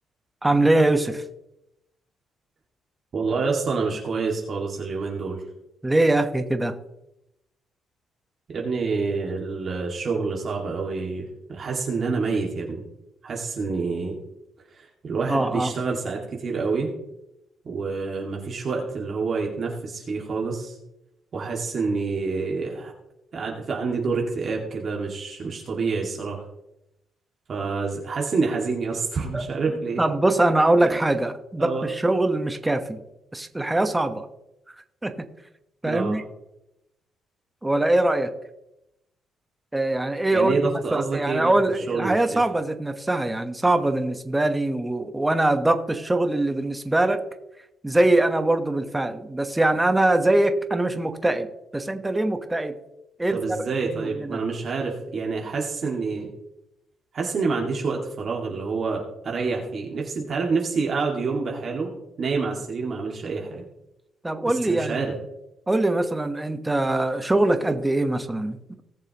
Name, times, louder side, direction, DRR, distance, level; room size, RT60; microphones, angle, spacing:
voice 1, 0.4-1.2 5.8-6.7 15.3-15.7 29.3-29.4 30.0-33.0 33.3-34.3 34.7-34.8 35.0-35.1 35.8-36.2 37.6-38.3 39.7-47.2 47.8-51.5 51.7-52.8 53.2-53.6 53.9-54.4 64.2-65.0 65.7-68.8, right 2 dB, 10° right, 8 dB, 1.1 m, -22 dB
voice 2, 3.1-5.4 8.5-12.8 13.2-14.2 14.7-16.9 17.6-20.8 21.3-22.9 23.3-26.4 27.5-30.0 30.8-31.0 31.6-31.9 35.8-36.2 40.3-41.5 41.9-42.4 53.3-56.3 57.1-61.9 62.2-63.6 64.5-65.1, right 4 dB, 50° right, -1 dB, 2.1 m, -27 dB
19.0 x 6.8 x 3.0 m, 0.89 s
cardioid pair, 90°, 0 cm